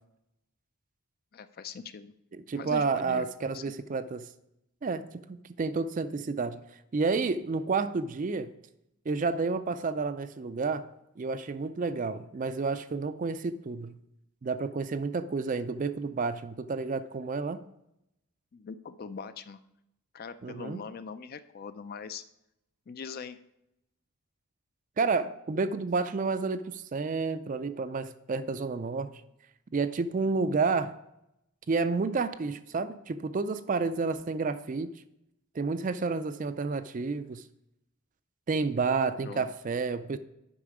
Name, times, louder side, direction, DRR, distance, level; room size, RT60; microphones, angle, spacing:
voice 1, 1.3-2.1 2.5-3.8 18.5-19.6 20.1-22.2 22.9-23.4 39.2-39.5, left 5 dB, 40° left, 12 dB, 0.4 m, -42 dB
voice 2, 2.3-4.3 4.8-6.6 6.9-8.5 9.1-10.8 11.2-14.0 14.4-17.6 20.4-20.8 25.0-29.1 29.7-30.9 31.7-34.9 35.5-37.5 38.5-40.2, right 4 dB, 35° right, 12 dB, 0.3 m, -30 dB
8.4 x 5.5 x 4.9 m, 0.83 s
head